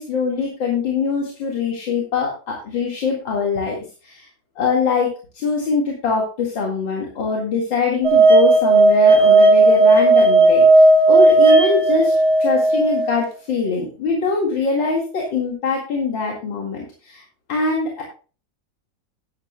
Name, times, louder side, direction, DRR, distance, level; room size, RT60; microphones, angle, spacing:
voice 1, 0.0-4.3 4.6-5.1 5.3-17.2 17.5-18.0, left 4 dB, 80° left, -2 dB, 2.9 m, -23 dB
sound 1, 8.0-13.1, right 2 dB, 35° right, 1.9 m, -13 dB
13.0 x 11.0 x 2.3 m, 0.36 s
omnidirectional pair, 2.1 m